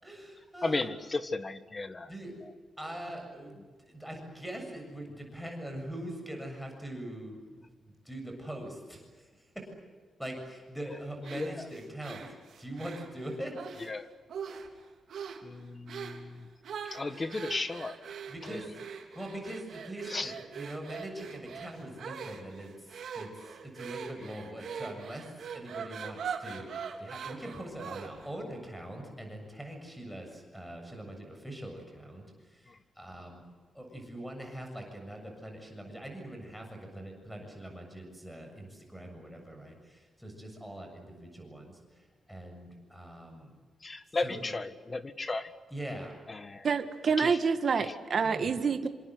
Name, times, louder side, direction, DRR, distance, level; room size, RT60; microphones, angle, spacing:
voice 1, 0.0-0.9 2.1-2.3 2.8-9.7 10.2-13.6 17.1-17.2 18.3-18.7 19.1-33.4 33.7-43.5 44.2-44.4 45.7-46.2 48.2-48.5, right 1 dB, ahead, 2 dB, 7.2 m, -43 dB
voice 2, 0.6-2.1 2.4-2.5 11.3-11.7 13.8-14.1 15.4-16.5 16.8-18.0 18.4-18.8 20.1-20.3 24.2-24.5 32.7-32.8 39.2-39.3 43.8-45.5 46.3-46.7 47.2-47.4 47.8-47.9, left 3 dB, 25° left, 11 dB, 1.6 m, -35 dB
sound 1, 11.2-13.9 14.3-14.8 15.1-15.5 15.9-16.2 16.6-28.3, right 6 dB, 65° right, 3.9 m, -42 dB
voice 3, 46.6-48.9, right 5 dB, 45° right, 8 dB, 1.8 m, -27 dB
27.5 x 26.5 x 8.0 m, 1.5 s
wide cardioid pair, 150°, 0 cm